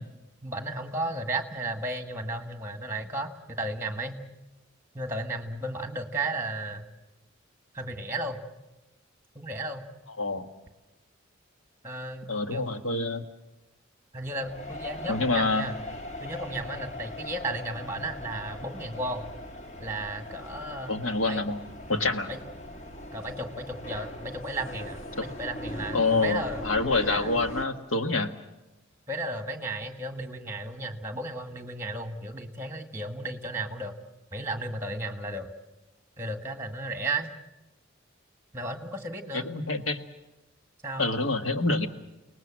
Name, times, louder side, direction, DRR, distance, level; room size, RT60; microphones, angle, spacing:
voice 1, 0.4-4.2 4.9-6.9 7.7-8.4 9.4-9.9 11.8-12.7 14.1-15.8 16.2-19.3 19.8-21.0 21.3-21.5 21.9-22.0 22.3-22.4 23.1-26.7 27.0-27.4 29.1-33.9 34.3-35.5 36.2-37.3 38.5-39.5 40.8-41.1, right 2 dB, 15° right, 6 dB, 1.8 m, -34 dB
voice 2, 12.3-13.2 15.1-15.7 20.9-21.6 21.9-22.3 25.2-25.3 25.9-28.3 39.3-40.0 41.0-41.9, left 3 dB, 80° left, 6 dB, 1.7 m, -27 dB
sound 1, 14.4-27.7, left 1 dB, 35° left, 1.6 m, -40 dB
29.5 x 19.0 x 7.6 m, 1.0 s
head